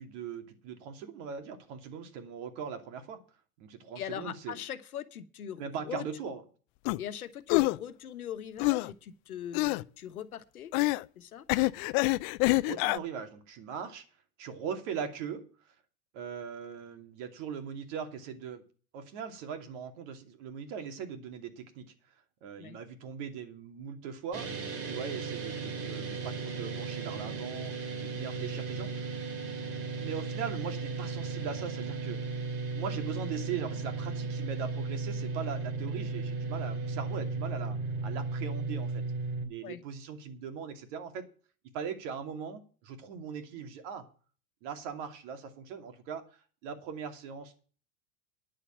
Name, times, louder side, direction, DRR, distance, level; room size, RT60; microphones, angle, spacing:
voice 1, 0.0-3.2 3.6-4.5 5.6-6.4 12.6-14.0 14.4-15.4 16.1-18.6 18.9-21.9 22.4-29.1 30.0-32.3 32.7-37.8 38.0-39.0 39.5-41.2 41.7-44.1 44.6-47.6, right 7 dB, 55° right, 7 dB, 2.8 m, -40 dB
voice 2, 3.9-6.1 7.0-10.7 11.1-11.4 22.6-22.8 39.6-39.8, left 9 dB, 80° left, 11 dB, 1.3 m, -41 dB
sound 1, 6.8-7.0 7.5-7.8 8.6-8.9 9.5-9.8 10.7-11.0 11.5-13.0, left 23 dB, 45° left, 0.5 m, -26 dB
sound 2, 24.3-39.5, right 4 dB, 35° right, 2.6 m, -35 dB
10.0 x 7.0 x 8.6 m, 0.39 s
hypercardioid pair, 95°, 43 cm